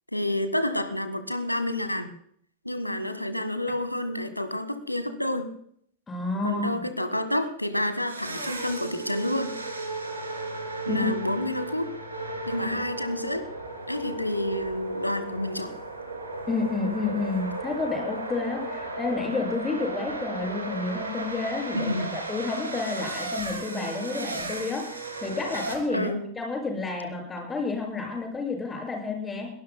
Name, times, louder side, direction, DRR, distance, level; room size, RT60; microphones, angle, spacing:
voice 1, 0.1-2.1 2.6-5.5 6.4-9.6 10.9-11.9 12.4-13.5 13.9-15.7 21.7-22.2 25.9-26.2, left 1 dB, 85° left, 11 dB, 1.5 m, -29 dB
voice 2, 6.1-6.8 10.9-11.0 16.5-24.9 25.2-29.5, left 3 dB, 15° left, 1 dB, 6.5 m, -30 dB
sound 1, 8.1-25.8, right 2 dB, 80° right, 3.0 m, -35 dB
22.0 x 19.0 x 2.2 m, 0.62 s
figure-of-eight pair, 90°, 0 cm